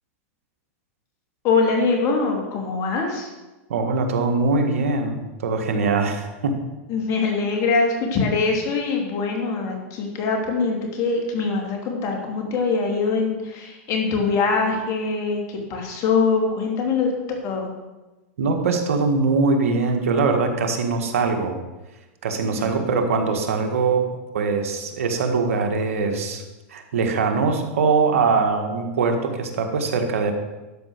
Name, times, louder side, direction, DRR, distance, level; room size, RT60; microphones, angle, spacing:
voice 1, 1.4-3.3 6.9-17.7 22.6-22.8, left 4 dB, 40° left, 1 dB, 2.9 m, -23 dB
voice 2, 3.7-6.6 18.4-21.6 22.2-24.1 24.3-26.4 26.7-30.3, right 4 dB, 85° right, 4 dB, 1.7 m, -22 dB
12.0 x 5.5 x 6.6 m, 1.1 s
hypercardioid pair, 125°, 7 cm